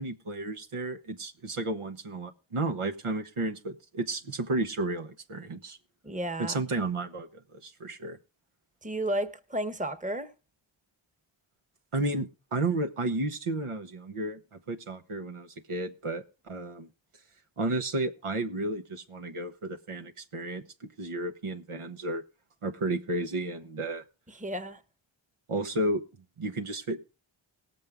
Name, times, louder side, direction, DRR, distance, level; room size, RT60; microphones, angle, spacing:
voice 1, 0.0-5.8 6.4-8.2 11.9-16.9 17.6-22.2 22.6-24.0 25.5-26.0 26.4-27.0, right 2 dB, 90° right, 1.2 m, -32 dB
voice 2, 6.0-6.6 8.8-10.3 24.3-24.8, right 1 dB, 15° right, 0.9 m, -32 dB
19.0 x 7.5 x 3.6 m
wide cardioid pair, 65°, 49 cm